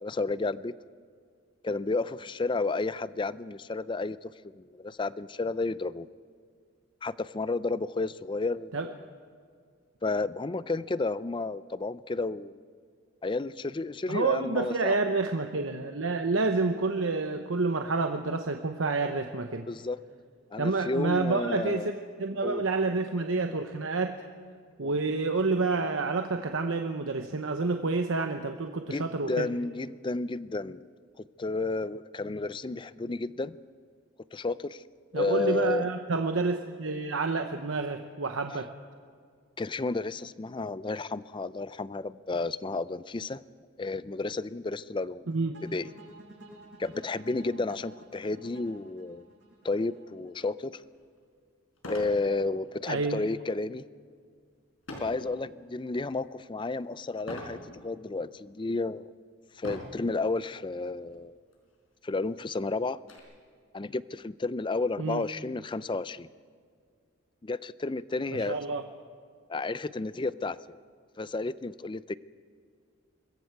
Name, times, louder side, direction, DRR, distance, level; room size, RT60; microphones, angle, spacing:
voice 1, 0.0-0.7 1.6-6.1 7.0-9.1 10.0-12.6 13.2-14.9 19.7-20.0 20.5-21.9 22.4-22.6 24.8-25.0 28.9-30.9 31.4-33.6 34.3-34.8 35.1-35.9 39.6-43.4 43.8-45.3 45.6-45.9 46.8-49.2 49.6-50.8 51.9-53.9 55.0-59.1 59.6-61.4 62.0-63.0 63.7-66.3 67.4-68.6 69.5-70.8 71.2-72.1, left 3 dB, 25° left, 16 dB, 0.4 m, -32 dB
voice 2, 14.1-19.7 20.6-24.2 24.8-29.5 35.1-38.7 45.3-45.6 52.9-53.2 65.0-65.2 68.5-68.8, right 3 dB, 80° right, 5 dB, 1.0 m, -29 dB
sound 1, 45.5-50.6, right 2 dB, 60° right, 7.8 m, -51 dB
sound 2, 50.8-50.9 51.8-52.2 52.7-53.0 54.9-55.2 55.9-56.3 57.3-57.6 58.4-58.5 59.6-60.1 61.1-61.2 61.5-61.6 62.1-63.2, left 1 dB, 90° left, 4.8 m, -41 dB
26.0 x 21.5 x 4.7 m, 2.1 s
head